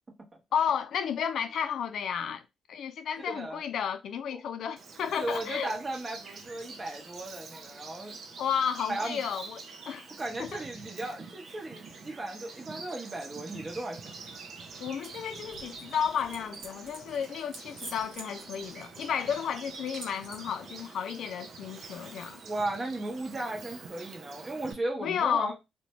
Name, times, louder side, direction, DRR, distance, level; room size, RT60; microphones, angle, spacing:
voice 1, 0.5-2.4 2.7-5.7 8.4-9.6 9.9-10.1 10.4-10.6 14.8-22.4 25.0-25.5, left 8 dB, 70° left, 0.4 m, -32 dB
voice 2, 3.3-3.6 4.3-4.4 5.2-8.2 8.9-9.2 10.2-14.0 22.4-25.5, right 2 dB, 30° right, 0.9 m, -36 dB
Bird vocalization bird call bird song, 4.8-24.7, right 4 dB, 55° right, 0.5 m, -46 dB
sound 1, 15.0-20.5, right 2 dB, 75° right, 0.9 m, -49 dB
2.6 x 2.2 x 3.0 m
cardioid pair, 90°, 0 cm